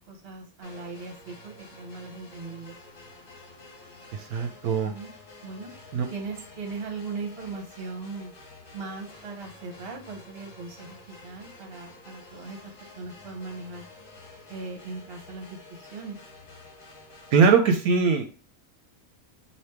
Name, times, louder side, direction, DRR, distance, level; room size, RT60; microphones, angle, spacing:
voice 1, 0.1-2.8 4.8-5.1 5.4-5.7 6.1-8.3 8.7-12.6 12.9-13.9 14.5-16.2, right 4 dB, 45° right, 3 dB, 1.1 m, -39 dB
sound 1, 0.6-17.5, left 2 dB, 60° left, 1.5 m, -49 dB
voice 2, 4.1-4.9 5.9-6.1 17.3-18.3, right 5 dB, 75° right, 4 dB, 1.0 m, -21 dB
3.3 x 2.8 x 4.4 m, 0.37 s
omnidirectional pair, 1.6 m